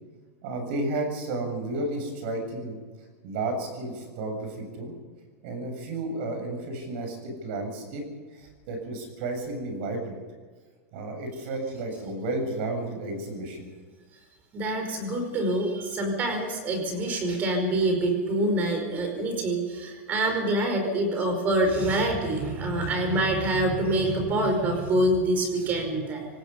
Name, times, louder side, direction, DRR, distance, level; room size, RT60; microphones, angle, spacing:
voice 1, 0.4-2.8 3.2-5.0 5.4-8.0 8.4-10.1 10.9-13.7, right 2 dB, 50° right, 4 dB, 7.2 m, -32 dB
voice 2, 14.5-26.3, right 1 dB, 20° right, 4 dB, 5.1 m, -26 dB
25.5 x 19.0 x 5.6 m, 1.4 s
supercardioid pair, 175°, 8 cm